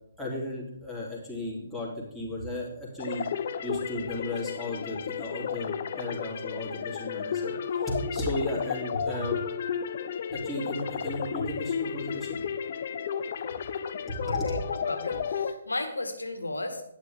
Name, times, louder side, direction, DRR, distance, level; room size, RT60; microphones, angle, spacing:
voice 1, 0.2-3.3 3.6-7.5 7.8-9.4 10.3-12.4 14.1-14.5, left 1 dB, ahead, -6 dB, 3.3 m, -34 dB
sound 1, 3.0-15.5, left 7 dB, 45° left, 0.7 m, -33 dB
voice 2, 14.2-16.8, left 2 dB, 75° left, 6 dB, 1.7 m, -35 dB
11.5 x 10.5 x 3.6 m, 0.77 s
figure-of-eight pair, 135°, 0 cm